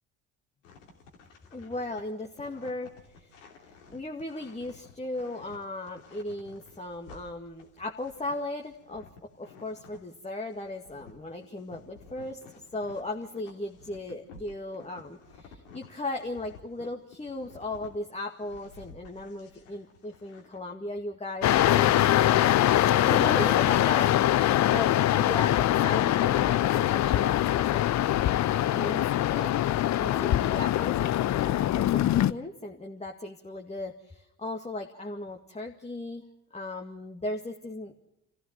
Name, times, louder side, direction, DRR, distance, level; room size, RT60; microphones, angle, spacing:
sound 1, 0.6-10.2 10.5-17.9 18.3-20.6, left 4 dB, 80° left, 3.1 m, -53 dB
voice 1, 1.5-3.3 3.9-9.1 9.4-12.4 12.7-22.3 23.0-27.8 28.5-29.5 30.0-36.3 36.5-38.0, left 2 dB, 15° left, 2 dB, 2.1 m, -37 dB
sound 2, 21.4-32.3, left 13 dB, 45° left, 0.8 m, -23 dB
28.0 x 15.5 x 7.6 m, 0.83 s
figure-of-eight pair, 50°, 38 cm